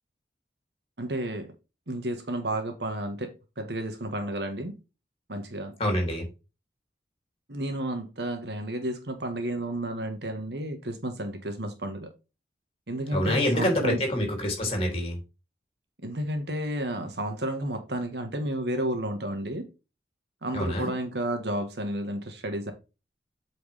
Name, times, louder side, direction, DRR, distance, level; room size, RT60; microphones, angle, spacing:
voice 1, 1.0-1.5 1.9-3.3 3.6-4.7 5.3-5.7 7.5-12.1 12.9-14.0 16.0-19.6 20.4-22.7, right 1 dB, 75° right, 1.6 m, -31 dB
voice 2, 5.8-6.3 13.1-15.2 20.5-20.9, left 1 dB, 35° left, 3.2 m, -26 dB
8.3 x 4.9 x 3.5 m
head